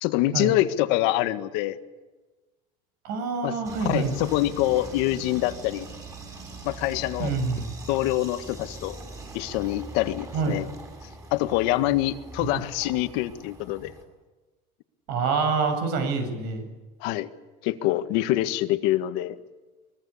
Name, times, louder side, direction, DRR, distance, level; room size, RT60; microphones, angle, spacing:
voice 1, 0.0-1.8 3.4-3.6 3.9-5.9 6.7-7.3 7.9-9.0 9.3-10.7 11.3-13.9 17.0-17.3 17.6-19.4, left 15 dB, 80° left, 10 dB, 1.7 m, -25 dB
voice 2, 3.0-4.2 7.2-7.7 10.3-10.6 12.5-12.6 15.1-16.7, right 4 dB, 70° right, 7 dB, 8.0 m, -26 dB
sound 1, 3.6-14.0, right 2 dB, 20° right, 7.2 m, -42 dB
24.5 x 22.5 x 8.6 m, 1.2 s
cardioid pair, 145°, 17 cm